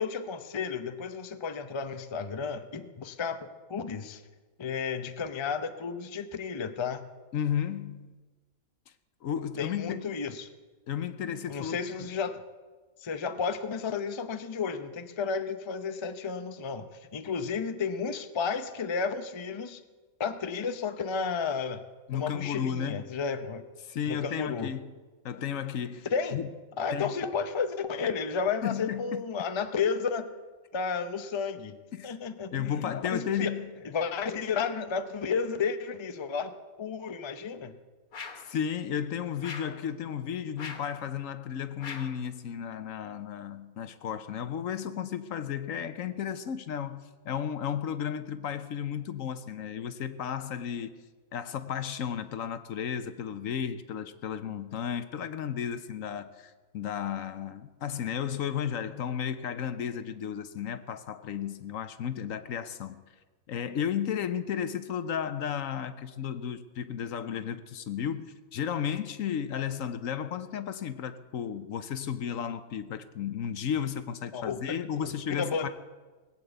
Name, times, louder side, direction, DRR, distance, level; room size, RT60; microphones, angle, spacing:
voice 1, 0.0-4.2 4.6-7.0 9.6-10.5 11.5-12.4 13.0-16.9 17.1-19.8 20.2-21.8 22.1-23.7 24.1-24.7 26.1-26.4 26.8-30.3 30.7-31.8 32.0-33.5 33.8-36.5 36.8-37.8 74.3-74.8 75.0-75.1 75.4-75.7, left 5 dB, 30° left, 9 dB, 0.6 m, -32 dB
voice 2, 7.3-8.2 9.2-10.0 10.9-11.8 22.1-23.2 23.8-24.9 25.2-26.1 26.3-26.5 26.9-27.2 28.6-29.2 31.9-32.1 32.5-33.7 38.4-50.9 51.3-63.0 63.5-75.7, left 8 dB, 70° left, 11 dB, 1.1 m, -33 dB
sound 1, 38.1-38.5 39.4-39.8 40.6-41.0 41.8-42.2, left 5 dB, 90° left, 1.9 m, -41 dB
19.0 x 8.6 x 8.0 m, 1.3 s
omnidirectional pair, 1.5 m